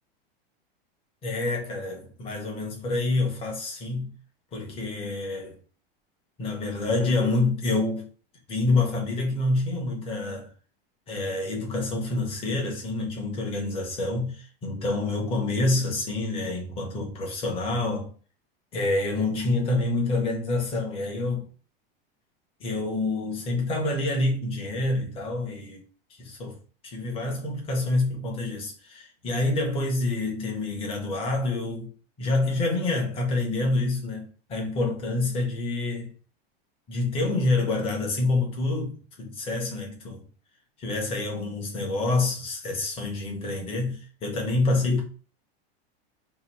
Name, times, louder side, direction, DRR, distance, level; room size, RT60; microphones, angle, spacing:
voice 1, 1.2-4.1 4.5-5.6 6.4-8.1 8.5-10.5 11.1-18.1 18.7-21.5 22.6-25.8 26.2-26.6 26.8-31.9 32.2-36.1 36.9-40.2 40.8-45.0, left 2 dB, 20° left, 0.8 m, -27 dB
2.9 x 2.6 x 4.1 m
supercardioid pair, 170°, 30 cm